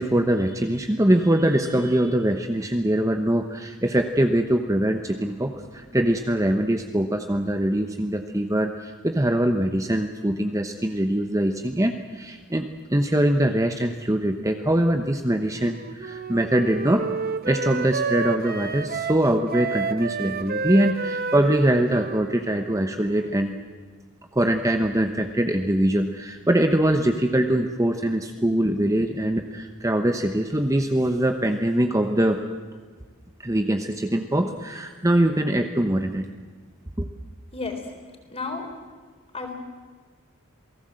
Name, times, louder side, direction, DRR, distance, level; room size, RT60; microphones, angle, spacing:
voice 1, 0.0-17.1 17.5-23.5 24.3-32.4 33.4-36.3 37.0-37.1, right 1 dB, 15° right, 6 dB, 1.0 m, -23 dB
Wind instrument woodwind instrument, 15.5-23.5, right 4 dB, 45° right, 1.1 m, -30 dB
voice 2, 38.3-38.7 39.3-39.5, left 4 dB, 25° left, 4 dB, 4.0 m, -31 dB
28.0 x 18.5 x 7.8 m, 1.5 s
head